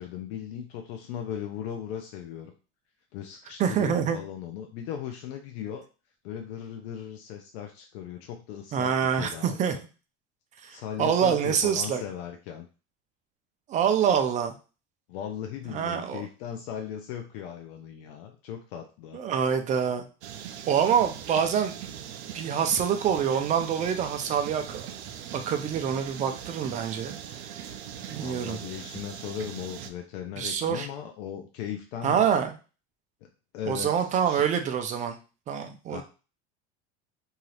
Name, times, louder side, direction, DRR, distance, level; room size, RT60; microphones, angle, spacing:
voice 1, 0.0-2.5 3.1-5.8 6.2-9.8 10.7-12.7 15.1-19.2 28.2-32.4 33.5-34.4 35.9-36.0, left 9 dB, 85° left, 4 dB, 0.5 m, -38 dB
voice 2, 3.6-4.2 8.7-9.7 10.6-12.0 13.7-14.6 15.7-16.2 19.1-20.1 20.7-21.7 22.3-24.9 25.3-27.2 28.1-28.6 30.4-30.9 32.0-32.5 33.7-35.2 35.5-36.0, right 8 dB, 25° right, 7 dB, 0.3 m, -26 dB
sound 1, 20.2-29.9, right 9 dB, 80° right, 0.5 m, -40 dB
2.7 x 2.4 x 3.1 m, 0.33 s
supercardioid pair, 145°, 32 cm